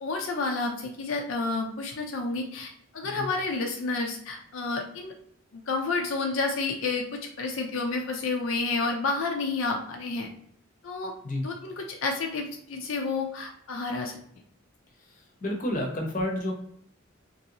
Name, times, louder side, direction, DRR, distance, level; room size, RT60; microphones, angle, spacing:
voice 1, 0.0-5.2 5.5-7.1 7.4-10.3 10.8-11.1 11.4-14.2, left 3 dB, 75° left, 2 dB, 0.5 m, -30 dB
voice 2, 15.4-16.5, left 1 dB, 40° left, 1 dB, 0.7 m, -30 dB
3.0 x 2.7 x 2.8 m, 0.69 s
head